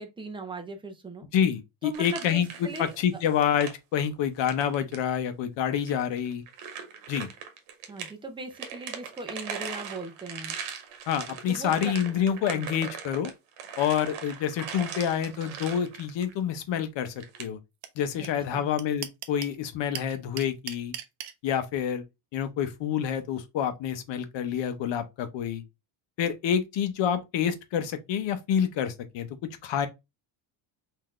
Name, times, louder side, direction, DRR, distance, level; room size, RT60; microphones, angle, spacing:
voice 1, 0.0-1.3 1.8-2.9 7.9-10.6 11.5-11.9 12.4-12.7 18.2-18.7, right 2 dB, 10° right, 0.5 m, -39 dB
voice 2, 1.3-6.4 7.1-7.3 11.1-13.3 13.8-17.6 18.0-20.9 21.4-22.0 22.3-25.6 26.2-29.3 29.6-29.9, left 8 dB, 60° left, 0.8 m, -28 dB
sound 1, 1.9-3.0 3.3-3.7 4.4-5.0 5.7-8.1 8.5-16.3 17.2-17.4, right 7 dB, 90° right, 1.0 m, -40 dB
sound 2, 17.8-17.9 18.2-18.3 18.5-19.6 19.9-21.3, right 11 dB, 55° right, 0.6 m, -36 dB
3.9 x 2.8 x 3.0 m
cardioid pair, 155°, 49 cm